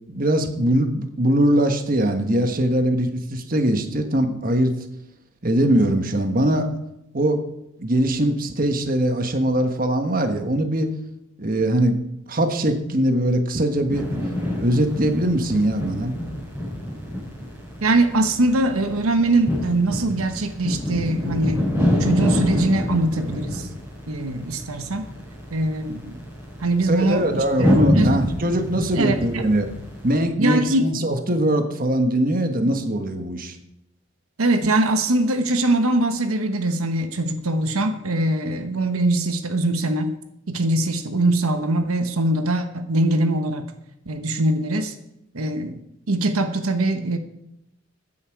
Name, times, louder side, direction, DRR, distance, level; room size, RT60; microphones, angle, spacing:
voice 1, 0.1-4.8 5.4-6.7 7.1-7.4 7.8-10.9 11.4-12.0 12.3-14.1 14.6-16.2 26.9-29.7 30.0-33.6, right 1 dB, 40° right, 6 dB, 1.3 m, -21 dB
sound 1, 13.9-30.2, left 1 dB, 15° right, 5.3 m, -27 dB
voice 2, 17.8-21.6 22.0-23.7 24.1-25.0 25.5-26.2 26.6-27.7 27.9-28.2 28.9-29.4 30.4-30.9 34.4-40.2 40.5-43.7 44.1-44.9 45.3-45.8 46.1-47.2, right 2 dB, 85° right, 8 dB, 1.1 m, -22 dB
15.0 x 10.0 x 4.7 m, 0.83 s
head